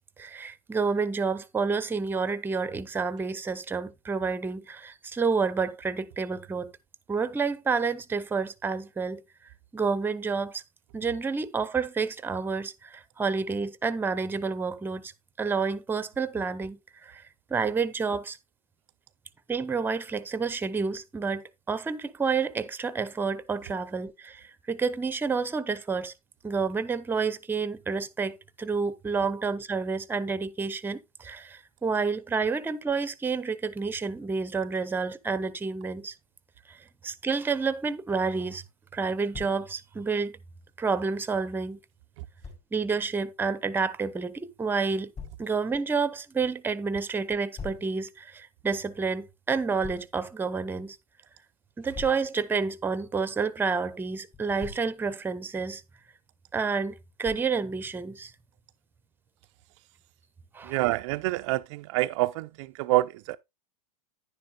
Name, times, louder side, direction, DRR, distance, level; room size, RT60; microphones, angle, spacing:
voice 1, 0.2-6.7 7.1-9.2 9.7-10.6 10.9-15.1 15.4-17.2 17.5-18.4 19.5-26.1 26.4-36.1 36.7-36.8 37.0-38.6 38.9-40.3 40.8-41.8 42.7-45.1 45.4-51.0 51.8-55.8 56.5-58.3 60.5-60.7, right 4 dB, 10° right, 0.8 m, -29 dB
Thump thud, 39.3-39.6 42.4-42.6 45.2-45.4 47.6-47.9 49.8-50.1 51.9-52.3 54.3-54.9 57.2-57.6, left 5 dB, 30° left, 5.6 m, -41 dB
voice 2, 60.6-63.4, right 19 dB, 50° right, 0.4 m, -27 dB
10.5 x 9.9 x 2.3 m
hypercardioid pair, 110°, 20 cm